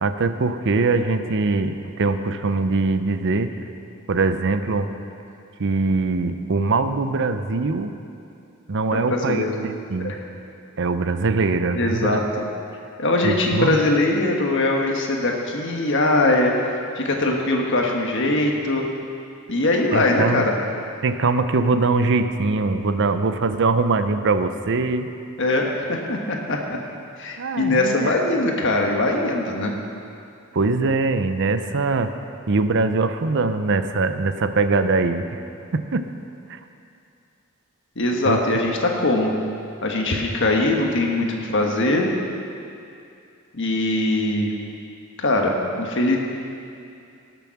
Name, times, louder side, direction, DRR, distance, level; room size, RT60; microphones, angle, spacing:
voice 1, 0.0-3.5 4.1-4.9 5.6-7.9 8.7-10.1 10.8-12.2 13.2-13.8 19.9-20.4 21.0-25.1 27.4-28.1 30.5-32.1 32.5-35.3 35.7-36.0 36.5-36.6 38.2-38.4, right 3 dB, 60° right, 9 dB, 0.6 m, -22 dB
voice 2, 11.7-12.2 13.0-16.7 17.0-18.8 19.5-20.5 25.4-26.8 27.2-29.7 38.0-39.3 39.8-42.1 43.5-44.5 45.2-46.2, left 2 dB, 60° left, 1 dB, 1.4 m, -21 dB
18.5 x 7.0 x 5.9 m, 2.5 s
head